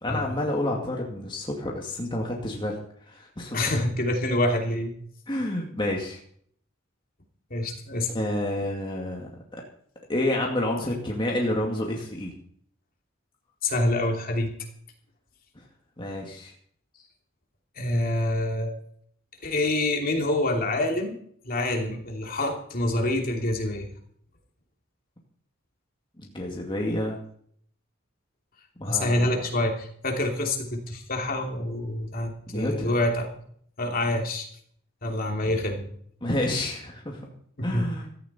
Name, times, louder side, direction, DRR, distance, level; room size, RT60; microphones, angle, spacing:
voice 1, 0.0-2.8 3.1-3.6 5.3-6.2 8.1-9.3 10.1-12.3 16.0-16.5 26.2-27.2 28.8-29.3 32.5-32.9 36.2-37.3 37.6-38.1, left 1 dB, 25° left, -1 dB, 2.3 m, -29 dB
voice 2, 3.5-4.9 7.5-8.1 13.6-14.5 17.8-18.7 19.4-21.2 21.4-23.9 28.9-33.3 33.8-34.5 35.0-35.9 37.6-37.8, left 1 dB, 45° left, 2 dB, 3.0 m, -26 dB
16.5 x 14.0 x 4.4 m, 0.62 s
head